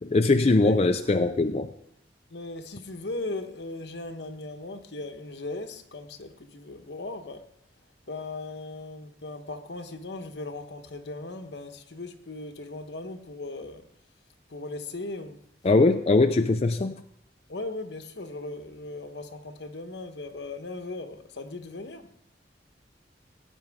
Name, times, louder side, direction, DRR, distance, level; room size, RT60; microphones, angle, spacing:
voice 1, 0.0-1.7 15.6-17.0, left 3 dB, 35° left, 0.4 m, -21 dB
voice 2, 2.3-7.5 8.1-13.9 14.5-15.4 16.8-16.9 17.5-22.1, left 2 dB, 70° left, 1.1 m, -38 dB
17.5 x 9.2 x 3.6 m
head